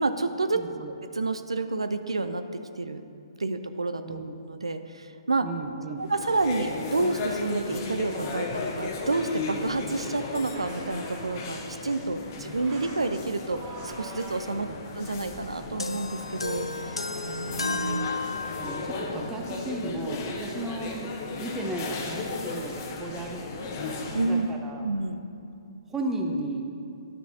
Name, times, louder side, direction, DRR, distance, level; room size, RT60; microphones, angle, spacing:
voice 1, 0.0-3.0 3.4-4.2 4.5-5.5 6.0-14.7 14.9-18.1 24.1-24.5 24.8-25.2, right 3 dB, 80° right, 9 dB, 0.4 m, -29 dB
voice 2, 0.5-0.9 4.0-4.3 5.4-6.1 12.0-12.3 14.5-14.8 18.5-23.4 24.1-24.8 25.9-26.7, right 2 dB, 10° right, 2 dB, 0.7 m, -35 dB
sound 1, 6.0-24.5, left 3 dB, 40° left, 0.9 m, -36 dB
sound 2, 7.2-9.0 10.0-11.8 12.4-14.7, right 2 dB, 30° right, 1.7 m, -44 dB
sound 3, 15.8-19.0, left 3 dB, 85° left, 0.5 m, -33 dB
11.5 x 6.1 x 2.7 m, 2.6 s
figure-of-eight pair, 125°, 3 cm